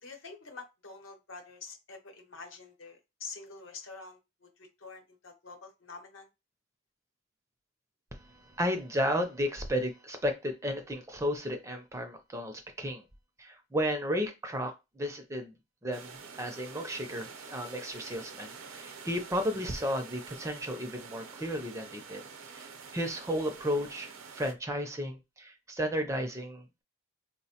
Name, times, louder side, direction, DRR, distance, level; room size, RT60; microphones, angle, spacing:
voice 1, 0.0-6.3, left 4 dB, 70° left, 5 dB, 0.8 m, -47 dB
voice 2, 8.6-13.0 13.4-15.5 15.8-16.1 16.4-22.2 22.5-26.8, equal, 15° right, 6 dB, 0.4 m, -33 dB
sound 1, 15.9-24.5, right 5 dB, 80° right, 0.6 m, -47 dB
4.1 x 2.1 x 2.8 m, 0.24 s
head